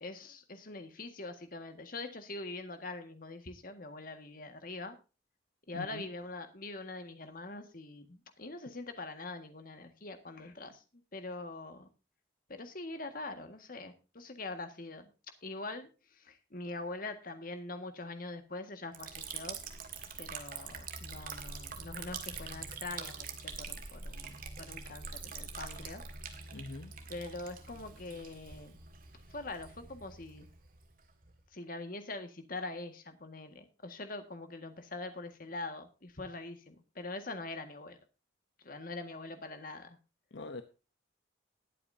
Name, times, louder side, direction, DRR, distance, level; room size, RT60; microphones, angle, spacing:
voice 1, 0.0-5.0 5.7-11.9 12.5-15.1 15.4-19.6 20.2-26.0 27.1-28.8 29.3-30.5 31.5-38.0 38.6-40.0, left 2 dB, 50° left, 7 dB, 1.7 m, -43 dB
voice 2, 5.7-6.0 26.5-26.9 40.3-40.6, left 2 dB, 70° left, 9 dB, 0.8 m, -43 dB
Liquid, 18.9-31.4, right 5 dB, 50° right, 1.9 m, -45 dB
20.0 x 8.5 x 2.7 m, 0.31 s
head